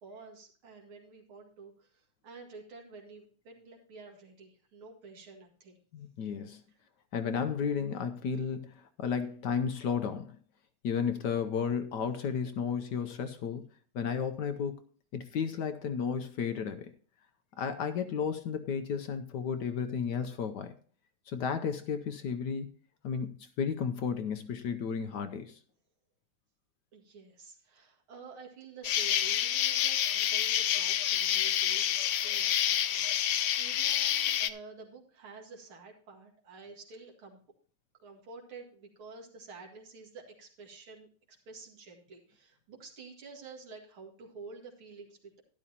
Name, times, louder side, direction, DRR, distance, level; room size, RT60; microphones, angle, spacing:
voice 1, 0.0-5.8 26.9-37.4 38.0-41.1 41.5-45.4, right 4 dB, 85° right, 0 dB, 2.8 m, -50 dB
voice 2, 5.9-6.6 7.1-10.4 10.8-13.6 13.9-14.7 15.1-16.9 17.6-20.7 21.3-22.7 23.0-25.6, left 6 dB, 65° left, 8 dB, 1.1 m, -33 dB
Insect, 28.8-34.5, left 11 dB, 85° left, 0.8 m, -28 dB
12.5 x 11.0 x 2.8 m, 0.44 s
omnidirectional pair, 2.3 m